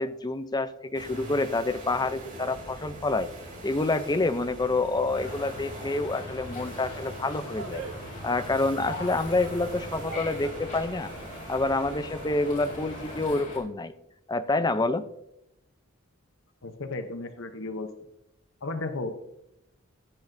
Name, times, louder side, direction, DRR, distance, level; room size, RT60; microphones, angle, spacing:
voice 1, 0.0-3.3 3.6-7.8 8.2-11.1 11.5-13.9 14.3-15.0, left 2 dB, 20° left, 11 dB, 0.5 m, -27 dB
sound 1, 0.9-13.4, right 1 dB, 40° right, 3.1 m, -43 dB
sound 2, 5.1-13.6, left 1 dB, 40° left, 4.4 m, -41 dB
sound 3, 7.1-12.3, right 5 dB, 70° right, 0.6 m, -45 dB
voice 2, 16.6-17.9 18.6-19.1, left 2 dB, 65° left, 7 dB, 0.8 m, -34 dB
15.0 x 9.4 x 2.6 m, 0.83 s
head